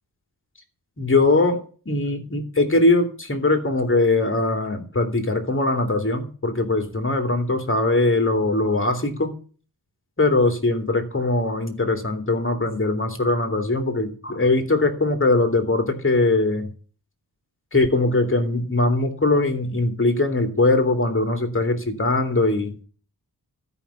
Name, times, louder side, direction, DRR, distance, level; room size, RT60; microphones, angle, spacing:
voice 1, 1.0-9.3 10.2-16.7 17.7-22.7, left 2 dB, 35° left, 5 dB, 2.7 m, -21 dB
13.0 x 5.7 x 8.2 m, 0.41 s
cardioid pair, 50°, 38 cm